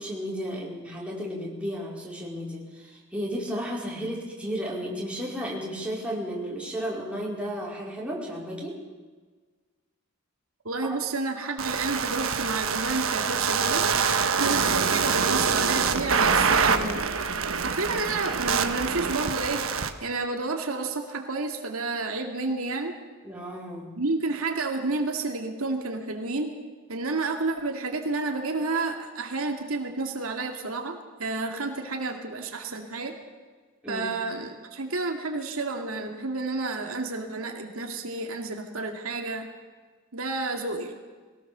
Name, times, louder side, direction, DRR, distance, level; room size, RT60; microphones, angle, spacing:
voice 1, 0.0-8.7 23.2-23.9 33.8-34.1, equal, 5° right, -4 dB, 4.7 m, -33 dB
voice 2, 10.6-14.1 14.3-17.1 17.4-19.7 20.0-22.9 24.0-26.5 26.9-33.1 33.9-39.5 40.1-41.0, right 3 dB, 85° right, 3 dB, 2.4 m, -30 dB
sound 1, 11.6-19.9, right 6 dB, 70° right, 1.3 m, -25 dB
22.0 x 18.0 x 6.9 m, 1.4 s
head